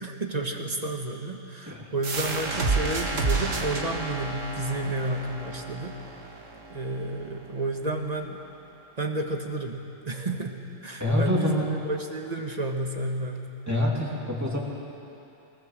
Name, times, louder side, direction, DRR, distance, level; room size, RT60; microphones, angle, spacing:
voice 1, 0.0-6.0 6.7-8.4 9.0-13.5, right 2 dB, 30° right, 3 dB, 1.5 m, -31 dB
sound 1, 2.0-7.4, right 3 dB, 75° right, 1.9 m, -30 dB
voice 2, 11.0-11.7 13.7-14.6, left 1 dB, 15° right, -3 dB, 2.8 m, -25 dB
20.0 x 18.5 x 7.5 m, 2.8 s
omnidirectional pair, 1.3 m